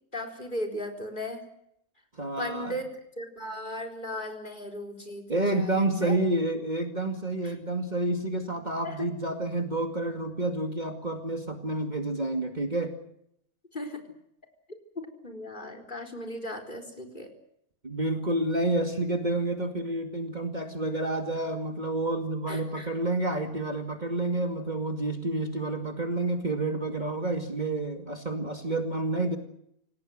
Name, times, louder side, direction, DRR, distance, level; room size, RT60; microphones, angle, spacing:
voice 1, 0.1-1.4 2.4-6.2 7.4-7.5 8.8-9.1 13.7-14.0 15.2-17.3 22.5-22.9, left 1 dB, 35° left, 6 dB, 4.4 m, -37 dB
voice 2, 2.1-2.8 5.3-12.9 17.8-29.4, right 2 dB, 30° right, 5 dB, 2.4 m, -29 dB
28.5 x 18.5 x 7.8 m, 0.75 s
omnidirectional pair, 1.5 m